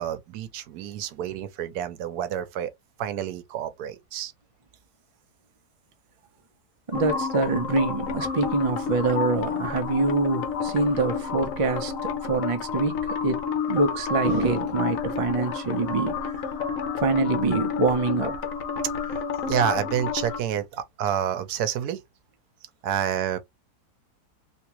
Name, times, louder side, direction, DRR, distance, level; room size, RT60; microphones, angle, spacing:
voice 1, 0.0-2.7 3.0-4.3 19.1-22.0 22.8-23.4, right 9 dB, 80° right, 1.1 m, -29 dB
sound 1, 6.9-20.4, left 6 dB, 60° left, 1.1 m, -30 dB
voice 2, 6.9-11.9 12.2-13.0 13.2-13.4 13.7-16.1 17.0-18.3, right 3 dB, 45° right, 0.4 m, -25 dB
3.5 x 3.0 x 2.9 m
omnidirectional pair, 1.7 m